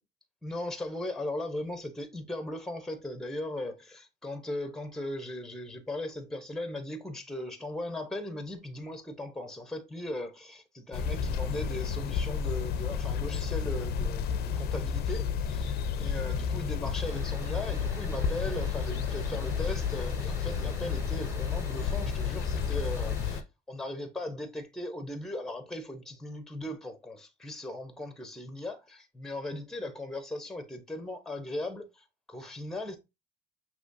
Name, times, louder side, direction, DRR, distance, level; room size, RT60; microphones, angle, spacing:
voice 1, 0.4-23.4 23.7-33.0, left 1 dB, 5° left, 0.8 m, -38 dB
sound 1, 10.9-23.4, left 6 dB, 70° left, 0.5 m, -31 dB
sound 2, 17.0-23.4, right 1 dB, 15° right, 1.5 m, -47 dB
6.1 x 3.0 x 2.6 m
cardioid pair, 110°, 17 cm